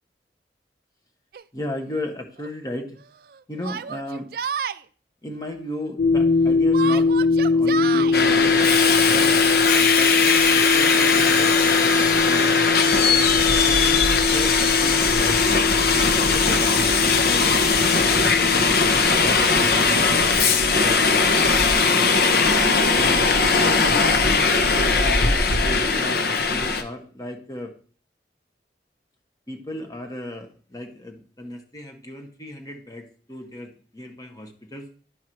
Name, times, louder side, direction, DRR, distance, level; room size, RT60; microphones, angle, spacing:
Yell, 1.3-1.4 2.4-2.5 3.6-4.8 6.7-8.2, right 6 dB, 55° right, 0.3 m, -29 dB
voice 1, 1.5-3.0 3.5-4.3 5.2-9.3 9.6-13.3 13.6-15.7 16.1-21.3 21.8-22.1 22.9-25.4 25.6-27.7 29.5-34.9, left 1 dB, 20° left, 4 dB, 1.3 m, -36 dB
sound 1, 6.0-19.1, left 4 dB, 90° left, 1.0 m, -22 dB
Subway metro underground, 8.1-26.8, left 4 dB, 60° left, 0.9 m, -19 dB
11.5 x 4.6 x 4.5 m, 0.43 s
head